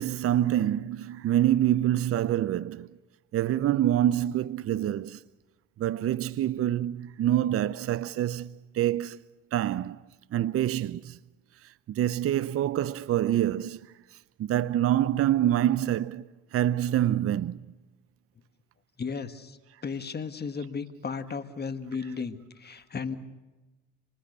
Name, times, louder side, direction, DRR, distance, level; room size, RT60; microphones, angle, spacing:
voice 1, 0.0-2.9 3.3-5.2 5.8-9.2 9.5-10.0 10.3-11.2 11.6-13.9 14.4-17.7 22.0-22.1, right 12 dB, 50° right, 0.7 m, -26 dB
voice 2, 19.0-23.2, left 5 dB, 35° left, 1.7 m, -35 dB
27.0 x 20.0 x 6.8 m
supercardioid pair, 75°, 30 cm